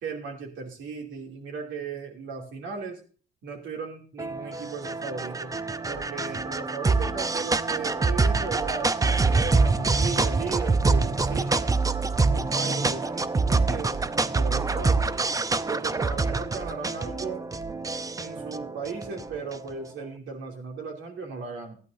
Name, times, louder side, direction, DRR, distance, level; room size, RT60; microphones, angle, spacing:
voice 1, 0.0-3.0 3.4-5.5 5.9-11.7 12.3-15.1 15.7-17.4 18.2-21.8, right 5 dB, 75° right, 2 dB, 2.8 m, -36 dB
sound 1, 4.2-19.7, right 3 dB, 15° right, 0.5 m, -25 dB
14.0 x 11.0 x 2.7 m, 0.40 s
cardioid pair, 90°, 20 cm